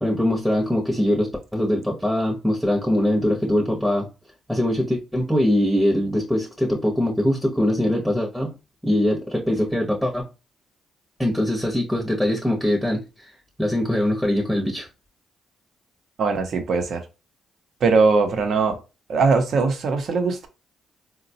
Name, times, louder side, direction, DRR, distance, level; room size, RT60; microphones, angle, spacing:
voice 1, 0.0-4.1 4.5-8.5 8.8-10.3 11.2-13.3 13.6-14.9, left 1 dB, ahead, 0.7 m, -22 dB
voice 2, 16.2-17.0 17.8-18.8 19.1-20.5, right 4 dB, 60° right, 0.7 m, -20 dB
4.0 x 2.2 x 2.7 m
cardioid pair, 90°, 0 cm